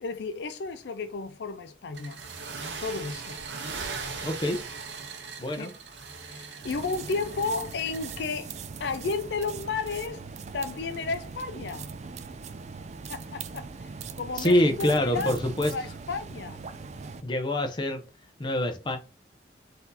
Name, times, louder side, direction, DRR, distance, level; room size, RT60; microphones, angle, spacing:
voice 1, 0.0-2.2 2.8-3.4 5.6-5.7 6.3-8.5 8.8-10.2 10.5-11.9 13.1-16.6, left 4 dB, 70° left, 0.4 m, -33 dB
sound 1, 1.9-8.2, right 4 dB, 80° right, 0.7 m, -39 dB
voice 2, 4.2-4.6 5.4-5.7 14.4-15.7 17.2-18.0 18.4-19.0, left 1 dB, 25° left, 0.7 m, -25 dB
sound 2, 6.6-17.2, right 5 dB, 40° right, 0.3 m, -40 dB
4.1 x 2.7 x 4.1 m
head